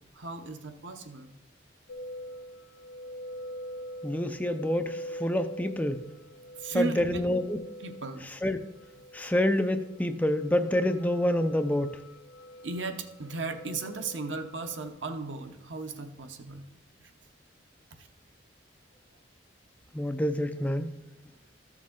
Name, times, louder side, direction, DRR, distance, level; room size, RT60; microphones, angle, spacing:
voice 1, 0.1-1.3 6.6-7.2 7.8-8.3 12.6-16.7, right 3 dB, 85° right, 7 dB, 0.9 m, -36 dB
sound 1, 1.9-14.9, equal, 85° left, 1.3 m, -44 dB
voice 2, 4.0-6.0 6.7-7.6 8.4-8.6 9.1-12.0 19.9-20.9, left 1 dB, 10° left, 8 dB, 0.4 m, -27 dB
13.5 x 6.3 x 3.7 m, 0.94 s
head